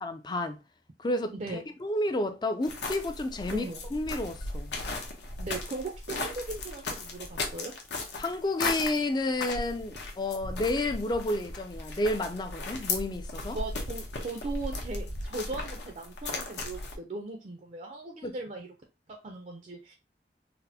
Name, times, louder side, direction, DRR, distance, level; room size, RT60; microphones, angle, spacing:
voice 1, 0.0-0.6 1.0-4.7 8.2-13.6 18.2-18.4, left 2 dB, 25° left, 0.3 m, -31 dB
voice 2, 1.3-1.6 3.5-3.8 5.4-7.7 13.5-18.7 19.2-19.9, right 3 dB, 40° right, 0.4 m, -38 dB
sound 1, 2.6-17.0, left 3 dB, 70° left, 0.7 m, -36 dB
4.1 x 2.0 x 2.7 m
head